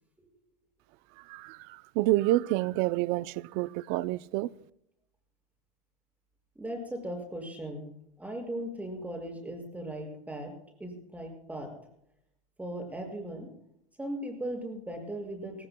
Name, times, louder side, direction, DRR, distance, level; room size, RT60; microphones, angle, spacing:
voice 1, 1.2-4.5, right 16 dB, 55° right, 0.6 m, -28 dB
voice 2, 6.6-7.9 8.2-10.5 10.8-11.7 12.6-13.5 14.0-15.7, right 1 dB, 10° right, 6.2 m, -38 dB
24.0 x 18.5 x 2.3 m
supercardioid pair, 115°, 19 cm